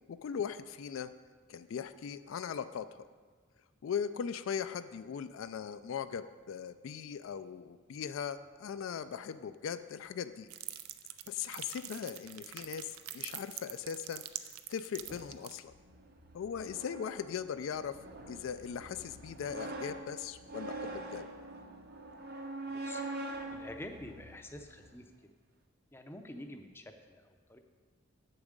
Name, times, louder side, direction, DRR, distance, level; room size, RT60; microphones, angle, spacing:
voice 1, 0.1-1.1 1.5-3.1 3.8-10.5 11.3-14.2 14.7-15.7 16.3-18.0 18.3-21.3, left 7 dB, 70° left, 11 dB, 0.3 m, -39 dB
sound 1, 10.5-15.6, right 12 dB, 85° right, 0.5 m, -44 dB
sound 2, 15.0-25.0, right 2 dB, 45° right, 0.7 m, -44 dB
voice 2, 22.7-23.0 23.5-25.3 25.9-27.6, left 1 dB, 10° left, 5 dB, 0.5 m, -47 dB
8.2 x 6.9 x 5.1 m, 1.5 s
head